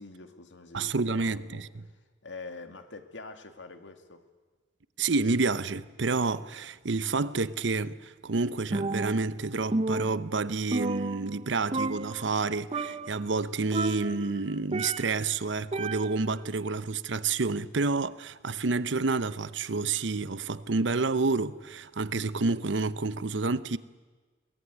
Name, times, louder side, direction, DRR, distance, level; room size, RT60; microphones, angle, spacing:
voice 1, 0.0-1.6 1.9-4.2, left 3 dB, 75° left, 2.1 m, -45 dB
voice 2, 0.7-1.7 5.0-23.8, right 3 dB, 70° right, 0.8 m, -29 dB
Percussion, 8.7-9.4 9.7-11.5 11.7-12.4 12.7-13.2 13.7-15.3 15.7-16.4, right 2 dB, 35° right, 0.7 m, -32 dB
22.5 x 19.0 x 9.6 m
head